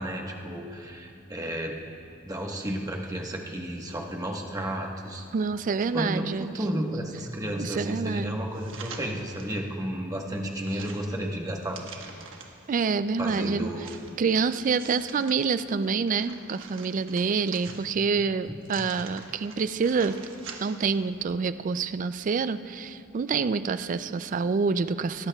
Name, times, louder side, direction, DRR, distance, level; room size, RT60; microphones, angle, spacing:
voice 1, 0.0-1.8 2.2-5.2 5.9-11.8 13.2-13.9 17.7-17.8, right 1 dB, 20° right, 0 dB, 1.2 m, -32 dB
voice 2, 5.3-6.5 7.6-8.4 12.7-13.7 14.2-20.1 20.6-25.3, right 5 dB, 40° right, 13 dB, 0.3 m, -27 dB
sound 1, 8.5-9.7 10.1-12.7 13.3-15.4 15.8-18.1 18.6-20.9 21.3-21.4, right 5 dB, 70° right, 1.3 m, -46 dB
21.0 x 17.5 x 2.3 m, 2.5 s
head